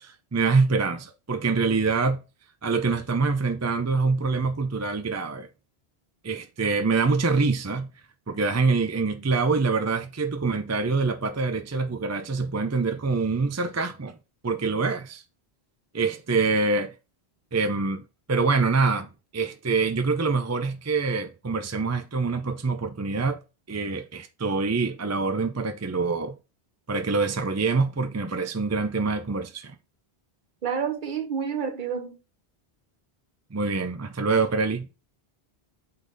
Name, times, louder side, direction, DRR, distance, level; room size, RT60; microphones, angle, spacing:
voice 1, 0.0-2.2 2.6-5.5 6.2-7.9 8.3-14.2 14.4-15.2 15.9-16.9 17.5-18.0 18.3-23.4 23.7-26.3 26.9-29.8 33.5-34.9, right 4 dB, 25° right, 0.4 m, -25 dB
voice 2, 30.6-32.2, right 7 dB, 50° right, 1.0 m, -29 dB
8.3 x 4.0 x 4.0 m
omnidirectional pair, 1.1 m